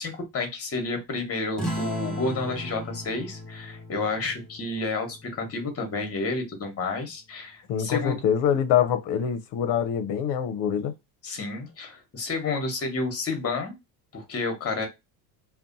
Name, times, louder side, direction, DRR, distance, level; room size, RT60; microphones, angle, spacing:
voice 1, 0.0-8.2 11.2-13.8 14.1-14.9, left 3 dB, 30° left, 1.2 m, -30 dB
sound 1, 1.6-6.6, equal, ahead, 0.7 m, -37 dB
voice 2, 7.7-10.9, left 8 dB, 60° left, 0.7 m, -25 dB
2.5 x 2.2 x 2.6 m
supercardioid pair, 95°, 47 cm